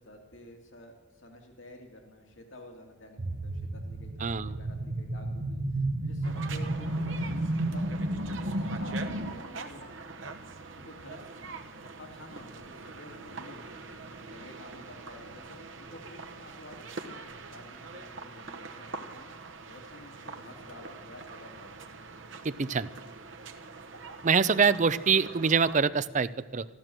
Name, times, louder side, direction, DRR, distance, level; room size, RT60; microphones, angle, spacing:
voice 1, 0.0-10.0 10.8-11.2 12.0-13.6 14.2-21.9, left 1 dB, 90° left, 3 dB, 2.3 m, -50 dB
sound 1, 3.2-9.3, right 1 dB, 70° right, 1.1 m, -32 dB
voice 2, 4.2-4.5 22.4-22.9 24.2-26.7, right 5 dB, 40° right, 15 dB, 0.5 m, -25 dB
sound 2, 6.2-25.8, right 4 dB, 90° right, 1.1 m, -44 dB
14.0 x 13.5 x 7.6 m, 1.2 s
head